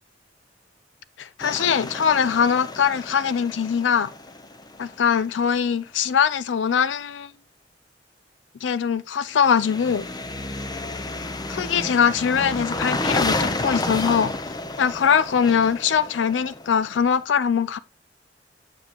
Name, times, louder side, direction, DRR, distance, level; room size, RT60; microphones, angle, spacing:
voice 1, 1.2-4.1 4.8-7.3 8.6-10.1 11.5-14.3 14.8-17.8, left 7 dB, 85° left, 0.4 m, -22 dB
sound 1, 1.4-5.3 9.4-17.1, left 2 dB, 20° left, 0.7 m, -31 dB
7.5 x 7.4 x 2.9 m
head